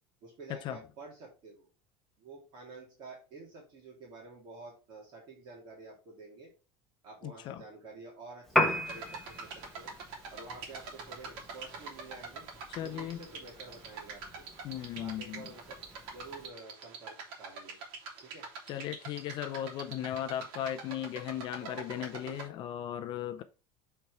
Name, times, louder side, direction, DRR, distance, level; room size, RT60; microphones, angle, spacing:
voice 1, 0.2-1.7 2.2-6.5 7.0-9.9 10.3-12.4 12.8-14.4 14.9-15.8 16.1-17.8 18.2-18.5 21.5-22.5 23.0-23.2, right 3 dB, 40° right, 3.2 m, -50 dB
voice 2, 7.2-7.6 12.7-13.2 14.6-15.4 18.7-23.4, left 11 dB, 40° left, 0.6 m, -37 dB
Piano, 8.5-16.5, left 1 dB, ahead, 1.1 m, -37 dB
sound 1, 8.9-22.5, right 5 dB, 75° right, 2.7 m, -45 dB
8.5 x 4.6 x 3.5 m
cardioid pair, 165°, 12 cm